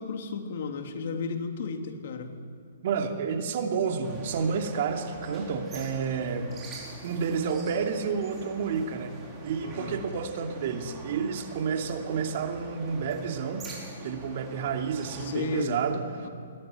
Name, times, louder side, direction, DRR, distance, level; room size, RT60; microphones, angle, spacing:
voice 1, 0.0-2.4 9.6-10.0 15.2-15.8 16.2-16.3, left 5 dB, 60° left, 5 dB, 2.8 m, -34 dB
voice 2, 2.8-6.5 7.0-9.1 9.4-13.7 14.0-16.0, right 6 dB, 50° right, 4 dB, 2.7 m, -30 dB
sound 1, 4.0-15.6, right 3 dB, 20° right, 5.0 m, -45 dB
22.0 x 18.0 x 9.4 m, 2.1 s
hypercardioid pair, 145°, 0 cm